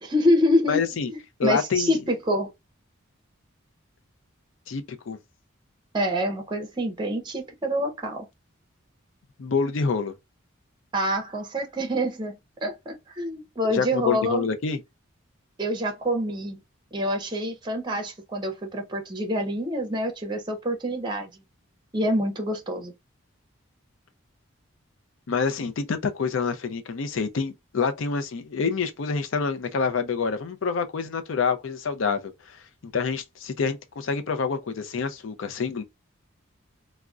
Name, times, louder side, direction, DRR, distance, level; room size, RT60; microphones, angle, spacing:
voice 1, 0.0-0.8 1.1-2.5 5.9-8.3 10.9-12.4 12.6-14.5 15.6-16.6 16.9-21.4 21.9-22.9, equal, 20° right, 0.6 m, -26 dB
voice 2, 0.7-1.1 1.4-2.0 4.7-5.2 9.4-10.1 13.7-14.8 25.3-32.6 32.8-35.8, left 5 dB, 70° left, 0.5 m, -27 dB
3.5 x 2.1 x 2.4 m
head